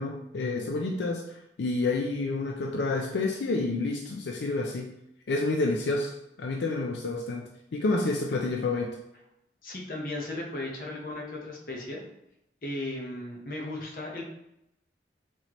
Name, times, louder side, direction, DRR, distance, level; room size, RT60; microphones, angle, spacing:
voice 1, 0.0-4.9 5.3-6.1 6.4-9.0, left 3 dB, 85° left, 1 dB, 0.4 m, -29 dB
voice 2, 9.6-12.0 12.6-14.3, left 2 dB, 50° left, -1 dB, 0.8 m, -36 dB
4.1 x 3.1 x 3.0 m, 0.84 s
head